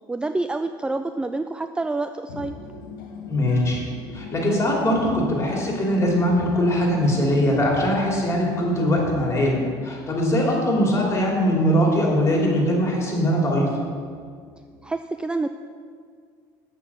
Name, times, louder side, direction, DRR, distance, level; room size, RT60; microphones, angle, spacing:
voice 1, 0.1-2.5 14.8-15.5, right 2 dB, 10° right, 9 dB, 0.3 m, -27 dB
sound 1, 2.3-14.9, left 4 dB, 85° left, 1.0 m, -40 dB
voice 2, 3.3-3.8 4.1-13.7, equal, 25° left, -2 dB, 2.8 m, -21 dB
7.5 x 5.9 x 7.0 m, 2.1 s
supercardioid pair, 80°, 11 cm